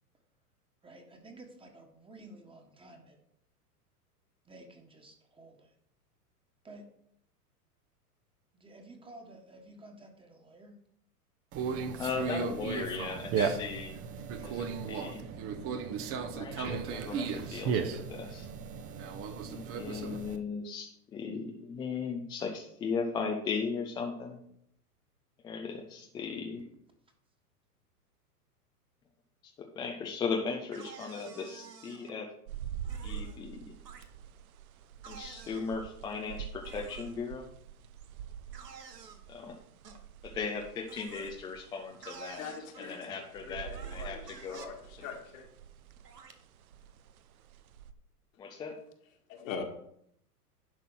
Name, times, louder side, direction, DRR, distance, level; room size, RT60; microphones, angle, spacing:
voice 1, 0.8-3.2 4.4-5.7 6.6-6.9 8.5-10.8, right 2 dB, 10° right, 1.5 m, -52 dB
Conversation, 11.5-20.4, right 6 dB, 30° right, 0.9 m, -35 dB
voice 2, 12.0-14.0 14.4-15.2 16.3-18.5 19.5-24.4 25.4-26.6 29.7-32.3 33.0-33.7 35.1-37.5 39.3-39.6 40.2-44.6 48.4-48.8, left 5 dB, 10° left, 0.4 m, -37 dB
sound 1, 30.7-32.1 32.8-33.4 33.9-34.0 35.0-35.8 36.6-37.2 38.5-39.2 39.8-40.0 40.9-41.3 42.0-43.0 43.7-44.7 45.0-45.2 46.0-46.3, right 6 dB, 85° right, 1.3 m, -50 dB
sound 2, 32.5-47.9, right 9 dB, 65° right, 0.8 m, -46 dB
voice 3, 42.3-45.5 49.3-49.6, left 6 dB, 55° left, 1.9 m, -43 dB
11.0 x 4.1 x 6.2 m
hypercardioid pair, 110°, 47 cm